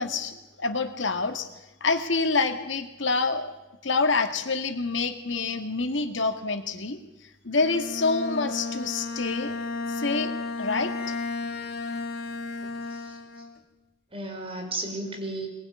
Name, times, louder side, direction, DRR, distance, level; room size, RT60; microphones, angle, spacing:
voice 1, 0.0-1.5 1.8-3.5 3.8-7.0 7.4-9.6 9.9-10.3 10.6-10.9, left 3 dB, 70° left, 7 dB, 2.0 m, -27 dB
Bowed string instrument, 7.5-13.6, left 3 dB, 55° left, 2.3 m, -33 dB
voice 2, 12.9-13.4 14.1-15.5, right 2 dB, 30° right, 2 dB, 5.4 m, -34 dB
24.5 x 19.0 x 9.6 m, 0.99 s
head